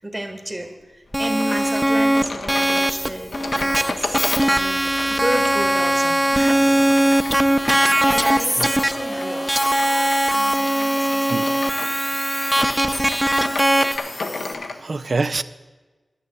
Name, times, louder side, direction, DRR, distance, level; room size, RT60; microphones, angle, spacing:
voice 1, 0.0-6.9 8.0-11.5 12.6-12.7, right 1 dB, 25° right, 1.3 m, -32 dB
sound 1, 0.9-14.5, left 2 dB, 55° left, 0.8 m, -40 dB
sound 2, 1.1-14.0, right 1 dB, 5° right, 0.6 m, -20 dB
sound 3, 1.2-14.8, left 3 dB, 85° left, 0.8 m, -33 dB
voice 2, 12.4-13.0 13.9-15.4, right 3 dB, 60° right, 0.4 m, -28 dB
11.5 x 6.5 x 7.7 m
wide cardioid pair, 60°, 0 cm